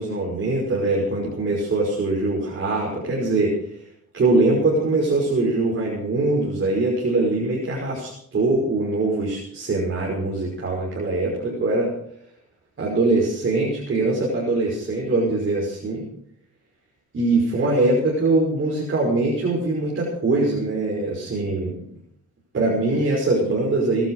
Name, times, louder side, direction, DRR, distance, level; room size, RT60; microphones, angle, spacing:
voice 1, 0.0-3.6 4.1-11.9 12.8-16.1 17.1-21.9 22.5-24.1, right 2 dB, 40° right, -3 dB, 5.8 m, -22 dB
21.0 x 12.0 x 4.9 m, 0.68 s
cardioid pair, 90°, 30 cm